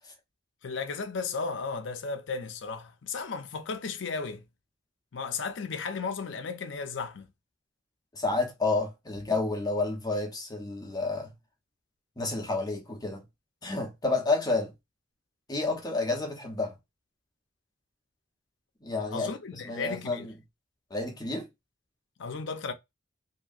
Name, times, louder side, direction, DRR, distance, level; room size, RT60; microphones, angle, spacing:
voice 1, 0.6-4.4 5.1-7.3 19.1-20.3 22.2-22.7, left 4 dB, 70° left, 0.5 m, -34 dB
voice 2, 8.1-11.3 12.2-13.2 13.6-14.7 15.5-16.8 18.8-20.3 20.9-21.5, left 3 dB, 20° left, 0.8 m, -30 dB
2.9 x 2.7 x 2.4 m
head